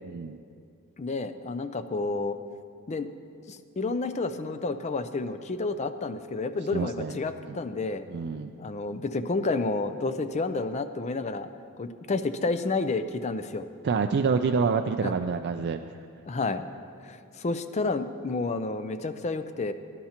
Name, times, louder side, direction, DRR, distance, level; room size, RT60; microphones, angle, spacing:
voice 1, 0.0-0.4 6.7-7.2 7.4-7.6 8.1-8.5 13.8-15.8, right 5 dB, 50° right, 6 dB, 0.3 m, -27 dB
voice 2, 1.0-2.4 2.9-3.1 3.5-8.0 8.6-11.5 11.8-13.7 15.0-15.1 16.3-16.6 17.1-19.7, left 3 dB, 30° left, 10 dB, 0.4 m, -30 dB
18.5 x 10.5 x 2.9 m, 2.3 s
head